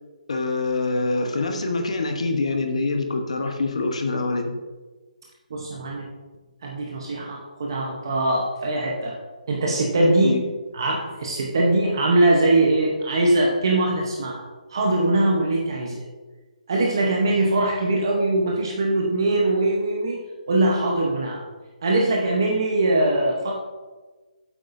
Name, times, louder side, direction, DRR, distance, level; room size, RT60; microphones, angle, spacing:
voice 1, 0.3-4.5 10.2-10.4, left 3 dB, 50° left, 5 dB, 1.0 m, -25 dB
voice 2, 5.5-6.1 6.6-9.2 9.5-10.4 10.7-16.1 16.7-20.2 20.5-21.4 21.8-23.5, right 2 dB, 30° right, -1 dB, 0.9 m, -22 dB
9.1 x 8.0 x 2.6 m, 1.3 s
hypercardioid pair, 180°, 4 cm